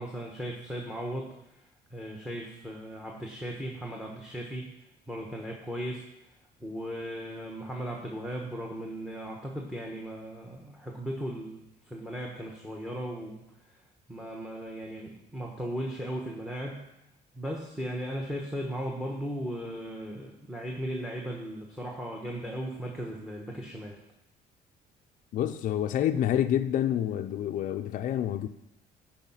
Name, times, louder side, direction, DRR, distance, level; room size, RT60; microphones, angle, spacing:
voice 1, 0.0-1.3 1.9-4.7 5.1-6.1 6.6-13.8 14.1-16.8 17.3-24.0, equal, 5° right, 1.1 m, -37 dB
voice 2, 25.3-28.5, left 10 dB, 50° left, 0.5 m, -28 dB
12.0 x 4.9 x 5.6 m
cardioid pair, 145°, 17 cm